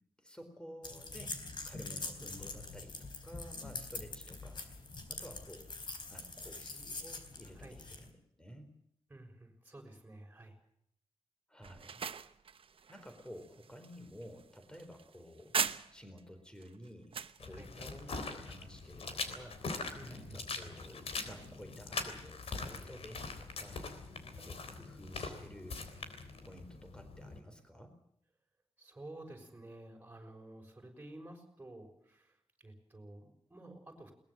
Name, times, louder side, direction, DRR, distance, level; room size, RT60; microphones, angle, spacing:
voice 1, 0.2-4.6 5.1-5.7 6.1-8.7 11.5-12.1 12.9-15.6 15.9-19.6 20.1-23.8 24.4-25.8 26.4-28.0, equal, 10° left, 7 dB, 4.2 m, -52 dB
sound 1, 0.8-8.1, left 3 dB, 50° left, 3.9 m, -44 dB
voice 2, 9.1-10.6 17.5-17.7 19.9-20.3 28.8-34.1, right 1 dB, 15° right, 2 dB, 6.2 m, -52 dB
sound 2, 11.6-16.2 16.6-17.4, right 6 dB, 65° right, 1.0 m, -40 dB
sound 3, 17.4-27.4, left 3 dB, 75° left, 3.6 m, -43 dB
22.0 x 20.5 x 7.5 m, 0.69 s
wide cardioid pair, 150°, 10 cm